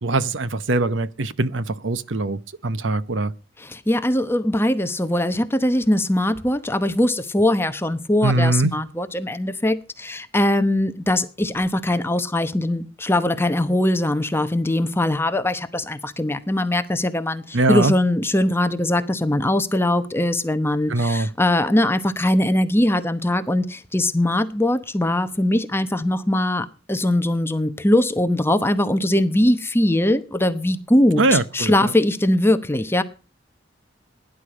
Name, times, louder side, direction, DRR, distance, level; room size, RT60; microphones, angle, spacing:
voice 1, 0.0-3.3 8.2-8.7 17.5-17.9 20.9-21.3 31.2-31.9, right 2 dB, 85° right, 0.9 m, -22 dB
voice 2, 3.6-33.0, left 1 dB, 15° left, 0.9 m, -21 dB
16.5 x 10.5 x 5.0 m
head